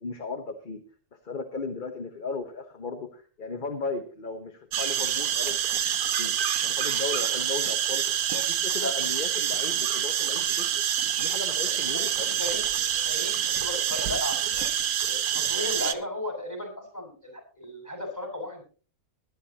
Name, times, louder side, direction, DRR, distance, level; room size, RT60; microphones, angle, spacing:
voice 1, 0.0-0.8 1.2-5.8 6.2-6.4 6.6-10.7 11.2-12.4, left 4 dB, 35° left, 5 dB, 1.3 m, -36 dB
sound 1, 4.7-15.9, right 9 dB, 85° right, 1.4 m, -27 dB
voice 2, 11.9-14.6 15.1-18.6, left 1 dB, 10° left, 4 dB, 6.2 m, -35 dB
19.5 x 11.5 x 2.9 m, 0.37 s
omnidirectional pair, 1.5 m